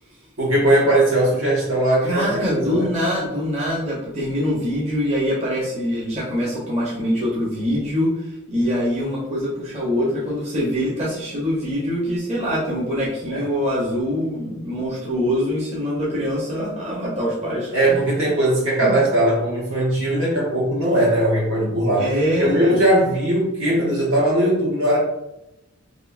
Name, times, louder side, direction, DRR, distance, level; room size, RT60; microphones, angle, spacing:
voice 1, 0.4-2.9 13.3-13.4 17.7-22.0 22.4-25.0, right 1 dB, 70° right, -5 dB, 1.1 m, -19 dB
voice 2, 2.1-18.1 18.8-19.0 22.0-22.9, equal, 30° right, -7 dB, 0.7 m, -24 dB
3.1 x 2.6 x 2.4 m, 0.88 s
head